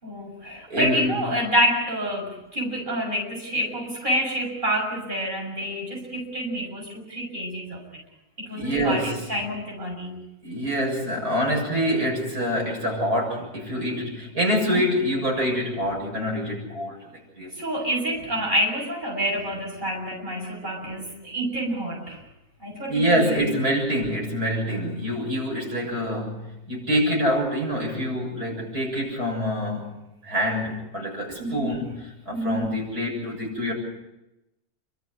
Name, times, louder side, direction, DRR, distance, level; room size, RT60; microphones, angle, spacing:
voice 1, 0.0-7.8 8.4-10.2 14.7-14.8 17.6-22.2 22.6-23.6 31.4-31.7 32.3-32.7, equal, 30° right, -1 dB, 6.8 m, -28 dB
voice 2, 0.7-1.4 8.5-9.3 10.4-17.6 22.9-29.9 30.2-33.7, equal, 85° right, -1 dB, 7.9 m, -26 dB
29.5 x 13.0 x 9.7 m, 0.94 s
omnidirectional pair, 1.6 m